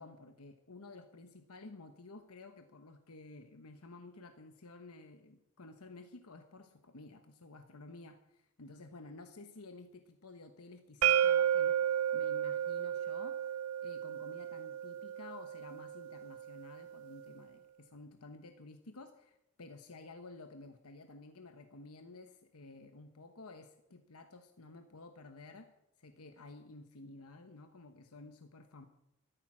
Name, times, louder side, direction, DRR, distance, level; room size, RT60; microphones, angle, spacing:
voice 1, 0.0-13.6 13.8-25.7 26.0-28.8, left 3 dB, 80° left, 7 dB, 1.1 m, -53 dB
sound 1, 11.0-16.8, right 9 dB, 85° right, 0.6 m, -33 dB
14.0 x 13.0 x 6.2 m, 0.83 s
head